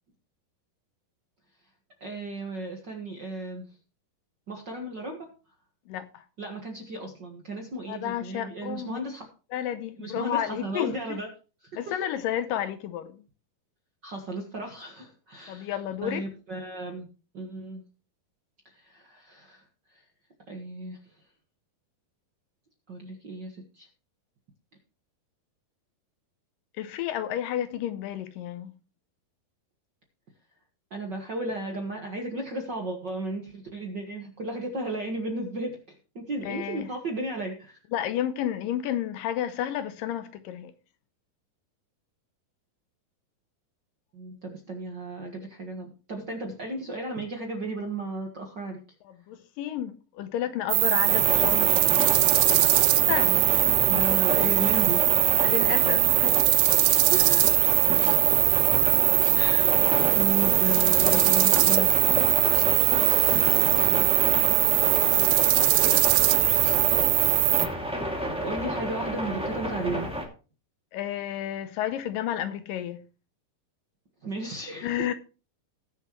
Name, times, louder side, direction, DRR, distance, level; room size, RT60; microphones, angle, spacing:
voice 1, 2.0-3.7 4.5-5.3 6.4-9.2 10.0-11.3 11.9-12.0 14.0-15.7 16.0-17.1 17.3-17.8 18.8-19.6 20.5-21.0 22.9-23.9 30.9-37.8 44.1-48.8 53.9-55.0 57.1-57.7 59.3-59.8 60.1-61.9 63.9-64.1 68.4-70.1 74.2-74.9, right 2 dB, 50° right, 1.4 m, -34 dB
voice 2, 5.9-6.2 7.9-9.0 9.5-11.2 11.8-13.2 15.5-16.3 26.8-28.7 36.4-36.9 37.9-40.7 49.1-52.1 53.1-53.8 55.3-56.4 70.9-73.0 74.8-75.1, left 11 dB, 80° left, 2.2 m, -31 dB
sound 1, 50.7-67.7, right 17 dB, 85° right, 2.5 m, -21 dB
sound 2, 51.0-70.2, equal, ahead, 1.6 m, -31 dB
19.5 x 7.0 x 3.1 m
omnidirectional pair, 4.2 m